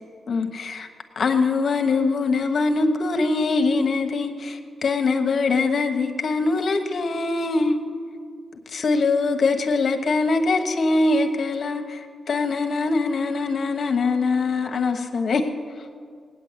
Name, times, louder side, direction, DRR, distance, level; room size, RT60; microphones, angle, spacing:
voice 1, 0.3-0.9 1.2-7.8 8.7-15.5, left 3 dB, 55° left, 6 dB, 1.1 m, -23 dB
18.5 x 9.3 x 8.1 m, 2.1 s
cardioid pair, 115°, 0 cm